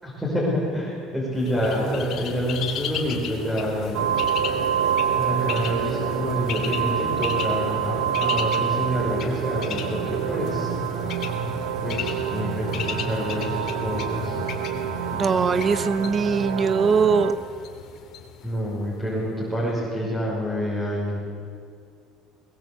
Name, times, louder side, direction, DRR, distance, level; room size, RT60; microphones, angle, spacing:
voice 1, 0.0-4.1 5.2-10.7 11.8-14.4 18.4-21.2, equal, 10° right, -5 dB, 6.2 m, -27 dB
Bird, 1.4-19.2, left 8 dB, 50° left, 3.0 m, -36 dB
sound 1, 3.9-17.3, right 9 dB, 85° right, 1.6 m, -27 dB
voice 2, 15.2-17.4, right 5 dB, 30° right, 13 dB, 1.2 m, -21 dB
22.0 x 20.5 x 8.3 m, 2.3 s
cardioid pair, 120°, 0 cm